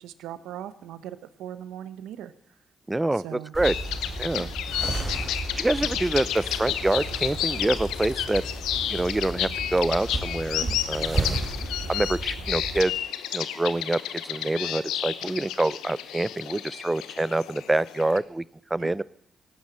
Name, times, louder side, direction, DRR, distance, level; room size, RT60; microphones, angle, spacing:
voice 1, 0.0-2.3 3.1-3.5 4.3-4.5 10.6-10.8 18.8-18.9, right 10 dB, 90° right, 14 dB, 0.8 m, -39 dB
voice 2, 2.9-3.7 4.2-4.5 5.5-8.4 8.9-11.3 11.9-12.9 13.3-18.4 18.7-19.0, right 2 dB, 20° right, 21 dB, 0.5 m, -26 dB
sound 1, 3.5-12.8, right 2 dB, 40° right, 4.8 m, -33 dB
sound 2, 3.6-18.2, left 10 dB, 90° left, 0.8 m, -31 dB
18.0 x 9.3 x 7.7 m, 0.69 s
supercardioid pair, 55°, 0 cm